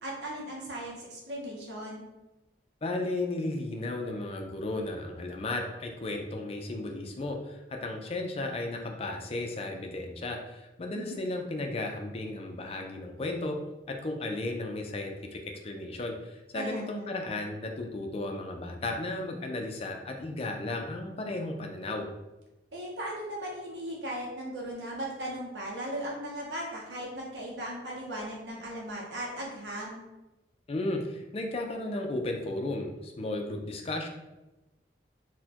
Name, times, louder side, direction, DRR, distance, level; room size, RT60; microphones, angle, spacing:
voice 1, 0.0-2.0 10.9-11.2 16.5-17.1 22.7-30.0, right 1 dB, 75° right, -3 dB, 0.7 m, -37 dB
voice 2, 2.8-13.6 13.9-22.1 30.7-34.1, left 2 dB, 35° left, 3 dB, 0.4 m, -34 dB
4.1 x 2.2 x 2.8 m, 1.0 s
head